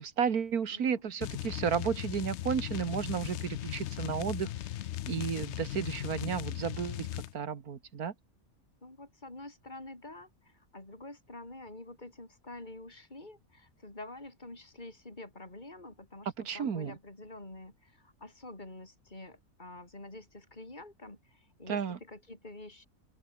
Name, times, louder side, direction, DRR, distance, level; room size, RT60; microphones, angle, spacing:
voice 1, 0.0-4.5 5.1-7.1 7.3-8.1 16.5-17.0 21.7-22.0, right 7 dB, 90° right, 2.0 m, -32 dB
voice 2, 0.7-1.0 8.8-22.9, left 2 dB, 30° left, 5.1 m, -48 dB
sound 1, 1.2-7.3, left 13 dB, 65° left, 0.7 m, -37 dB
open air
omnidirectional pair, 1.5 m